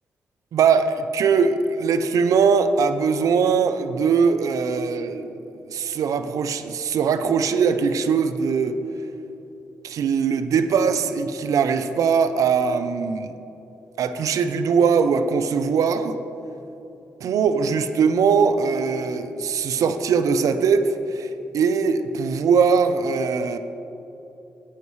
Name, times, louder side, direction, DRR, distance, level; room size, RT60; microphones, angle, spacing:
voice 1, 0.5-5.3 5.7-8.8 9.8-13.3 14.0-16.2 17.2-21.3 21.5-23.6, right 6 dB, 75° right, 10 dB, 0.6 m, -21 dB
15.0 x 9.1 x 3.2 m, 3.0 s
supercardioid pair, 50°, 6 cm